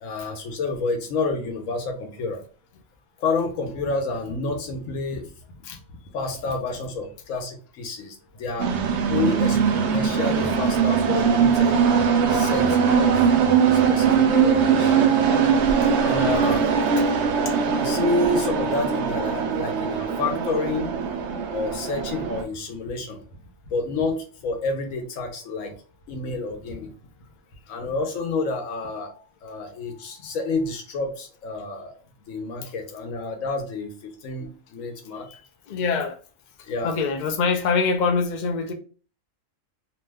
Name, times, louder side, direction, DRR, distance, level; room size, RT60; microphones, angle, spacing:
voice 1, 0.0-2.5 3.2-5.3 6.1-8.7 9.0-11.8 12.3-13.2 13.7-15.0 16.0-16.6 17.7-20.9 21.5-23.2 23.7-25.7 26.1-26.9 27.7-29.1 29.4-32.0 32.3-35.3 36.6-37.1, left 3 dB, 85° left, 1.1 m, -29 dB
sound 1, 8.6-22.4, right 6 dB, 65° right, 0.8 m, -21 dB
voice 2, 35.7-36.2 36.8-38.7, left 4 dB, 55° left, 0.5 m, -24 dB
2.8 x 2.2 x 3.3 m
omnidirectional pair, 1.3 m